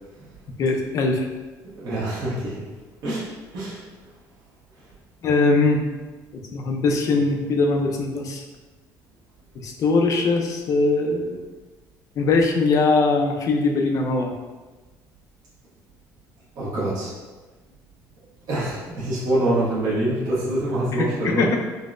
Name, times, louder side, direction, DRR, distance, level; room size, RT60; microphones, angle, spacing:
voice 1, 0.6-1.3 5.2-5.8 6.5-8.4 9.6-11.4 12.2-14.3 20.9-21.6, left 3 dB, 45° left, 2 dB, 0.4 m, -21 dB
voice 2, 1.6-2.6 3.0-3.3 3.5-3.8 16.5-17.1 18.5-21.6, right 1 dB, 60° right, -9 dB, 1.0 m, -25 dB
3.8 x 2.0 x 2.4 m, 1.2 s
cardioid pair, 125°, 8 cm